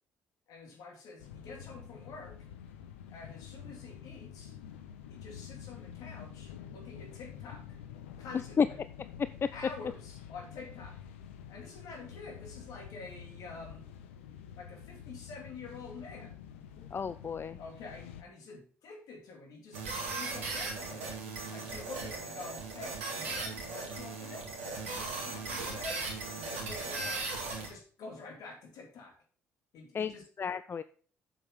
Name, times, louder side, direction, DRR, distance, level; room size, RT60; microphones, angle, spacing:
voice 1, 0.5-2.4 3.1-4.5 5.1-7.6 8.2-8.6 9.5-11.0 11.5-13.9 14.6-16.3 17.6-21.1 21.5-24.5 24.9-27.3 27.5-29.1 29.7-30.2, left 4 dB, 65° left, 3 dB, 2.8 m, -48 dB
sound 1, 1.2-18.2, left 9 dB, 80° left, 0.8 m, -48 dB
voice 2, 16.9-17.6 29.9-30.8, left 6 dB, 35° left, 14 dB, 0.4 m, -31 dB
sound 2, 19.7-27.7, right 3 dB, 85° right, 2.0 m, -38 dB
7.7 x 7.1 x 3.7 m, 0.43 s
hypercardioid pair, 50°, 7 cm